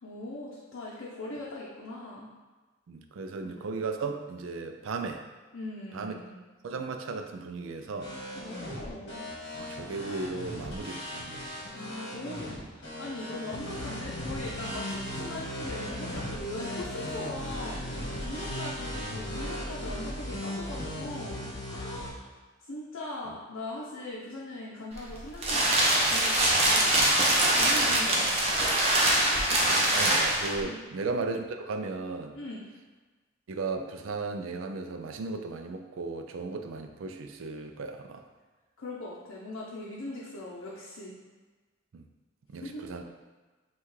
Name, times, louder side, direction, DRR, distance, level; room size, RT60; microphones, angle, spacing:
voice 1, 0.0-2.3 3.4-3.7 5.5-6.4 8.3-9.2 11.7-17.9 18.2-22.2 22.7-27.2 27.6-28.7 30.6-30.8 32.3-32.6 38.8-41.1 42.6-42.9, left 1 dB, 80° left, -6 dB, 0.6 m, -40 dB
voice 2, 2.9-5.2 5.9-6.1 6.6-8.1 9.6-11.4 23.3-23.4 28.1-28.2 29.5-32.4 33.5-38.2 41.9-42.0 42.5-43.0, right 3 dB, 75° right, 5 dB, 0.4 m, -36 dB
sound 1, 8.0-22.1, equal, 60° left, 1.2 m, -37 dB
sound 2, 24.9-30.6, right 1 dB, 30° right, 0.6 m, -23 dB
5.5 x 2.4 x 3.1 m, 1.3 s
head